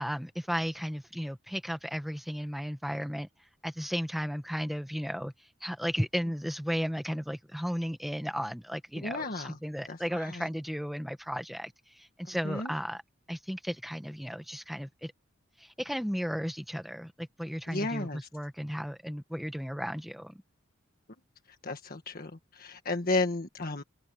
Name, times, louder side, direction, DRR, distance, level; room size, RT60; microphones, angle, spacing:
voice 1, 0.0-3.3 3.6-5.3 5.6-13.0 13.3-15.1 15.6-20.4, equal, ahead, 1.4 m, -34 dB
voice 2, 9.0-9.6 9.9-10.5 12.4-12.7 17.7-18.3 21.6-23.8, left 2 dB, 45° left, 1.6 m, -33 dB
head